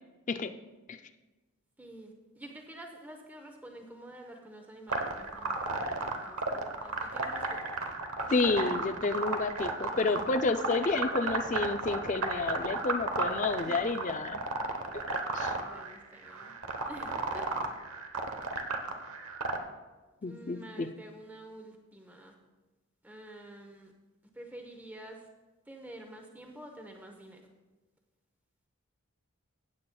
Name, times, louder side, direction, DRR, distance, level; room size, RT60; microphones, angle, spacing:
voice 1, 1.8-7.7 13.6-13.9 15.5-16.5 16.9-17.5 20.2-22.3 23.0-23.9 24.3-25.3 25.7-27.4, right 1 dB, 5° right, 2 dB, 0.8 m, -49 dB
sound 1, 4.9-19.6, right 3 dB, 75° right, 0.9 m, -34 dB
voice 2, 8.3-14.4 15.3-15.5 20.2-20.9, left 3 dB, 35° left, 9 dB, 0.4 m, -30 dB
16.0 x 8.5 x 2.3 m, 1.2 s
head